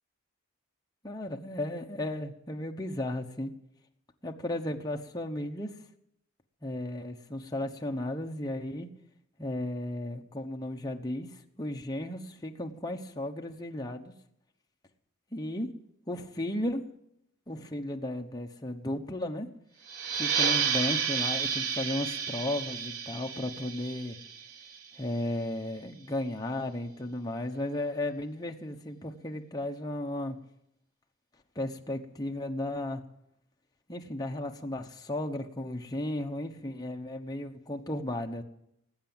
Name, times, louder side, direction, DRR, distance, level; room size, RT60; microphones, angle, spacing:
voice 1, 1.0-3.5 4.2-5.7 6.6-8.9 9.4-11.3 11.6-14.1 15.3-15.7 16.1-16.8 17.5-19.5 20.1-24.2 25.0-30.4 31.5-33.0 33.9-38.4, left 1 dB, 15° left, 2 dB, 1.0 m, -34 dB
sound 1, 19.9-25.1, right 6 dB, 75° right, 1.3 m, -31 dB
19.5 x 8.3 x 8.9 m, 0.79 s
head